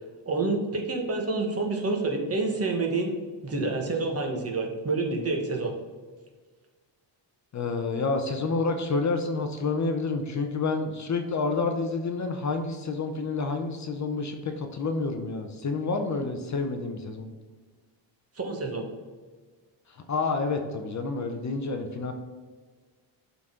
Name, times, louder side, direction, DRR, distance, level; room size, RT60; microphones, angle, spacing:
voice 1, 0.2-3.1 3.4-5.7 18.4-18.8, right 3 dB, 30° right, 2 dB, 1.2 m, -28 dB
voice 2, 7.5-17.3 20.1-22.1, left 3 dB, 40° left, 6 dB, 0.7 m, -29 dB
12.0 x 4.1 x 3.7 m, 1.4 s
wide cardioid pair, 160°, 46 cm